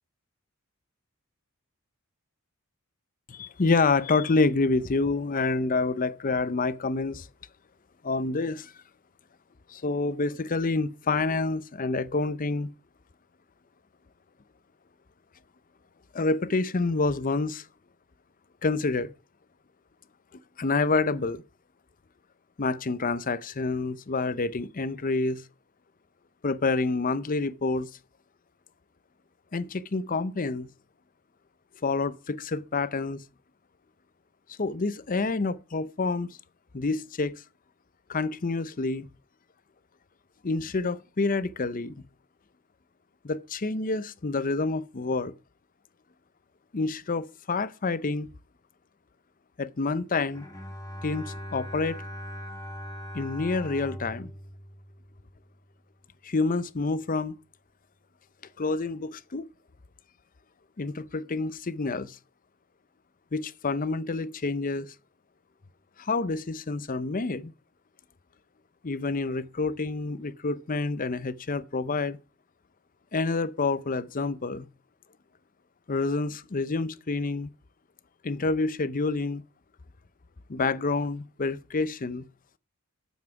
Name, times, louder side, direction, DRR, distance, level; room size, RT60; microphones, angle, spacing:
voice 1, 3.3-7.3 8.0-8.7 9.7-12.7 16.1-17.7 18.6-19.1 20.6-21.4 22.6-25.4 26.4-27.9 29.5-30.7 31.8-33.2 34.5-36.4 36.7-37.4 38.1-39.1 40.4-41.9 43.2-45.3 46.7-48.3 49.6-50.5 51.0-52.0 53.1-54.3 56.2-57.4 58.6-59.5 60.8-62.2 63.3-64.9 66.0-67.5 68.8-72.2 73.1-74.7 75.9-77.5 78.2-79.4 80.5-82.2, left 3 dB, 40° left, 0.6 m, -28 dB
Bowed string instrument, 50.3-55.6, equal, 15° left, 2.2 m, -40 dB
9.5 x 7.3 x 5.8 m
head